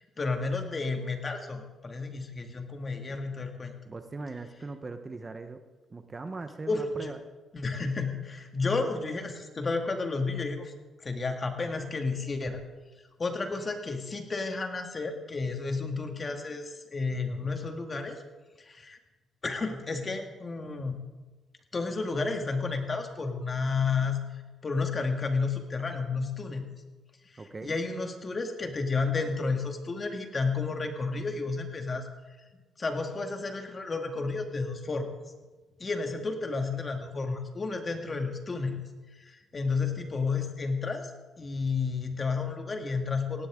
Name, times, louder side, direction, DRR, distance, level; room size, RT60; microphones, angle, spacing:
voice 1, 0.2-3.7 6.7-7.1 7.5-10.7 11.0-12.6 13.2-18.2 18.6-19.0 19.4-21.0 21.7-24.2 24.6-26.7 27.3-32.1 32.8-35.1 35.8-38.8 39.2-41.1 41.4-43.5, left 4 dB, 35° left, 4 dB, 2.1 m, -31 dB
voice 2, 3.8-5.6 5.9-7.2 27.4-27.7, right 3 dB, 30° right, 8 dB, 1.0 m, -40 dB
18.0 x 17.0 x 3.8 m, 1.2 s
cardioid pair, 90°, 0 cm